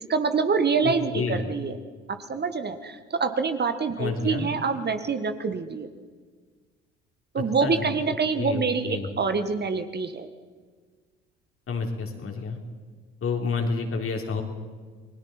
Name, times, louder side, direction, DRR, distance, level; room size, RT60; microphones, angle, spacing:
voice 1, 0.0-1.8 2.1-5.9 7.3-10.3, right 5 dB, 30° right, 8 dB, 1.6 m, -26 dB
voice 2, 0.8-1.4 4.0-4.5 7.6-7.9 8.4-9.1 11.7-12.6 13.2-14.4, left 4 dB, 40° left, 3 dB, 3.5 m, -29 dB
29.5 x 21.0 x 4.4 m, 1.5 s
hypercardioid pair, 55°, 32 cm